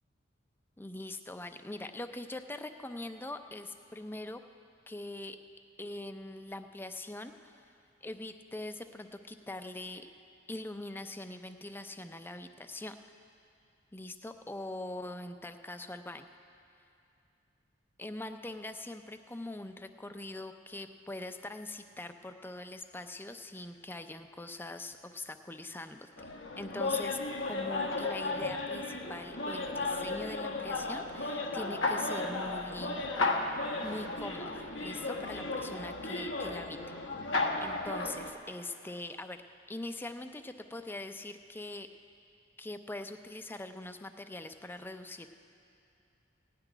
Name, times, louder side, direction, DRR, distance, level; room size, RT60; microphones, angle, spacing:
voice 1, 0.8-4.4 4.9-5.4 5.8-7.6 8.0-10.1 10.5-13.0 13.9-16.3 18.0-26.1 26.6-27.2 27.4-33.1 33.8-36.8 37.6-39.4 39.7-41.9 42.6-45.3, left 2 dB, 10° left, 8 dB, 0.5 m, -42 dB
sound 1, 26.2-38.3, left 2 dB, 85° left, 1.2 m, -34 dB
17.0 x 6.0 x 9.9 m, 2.6 s
head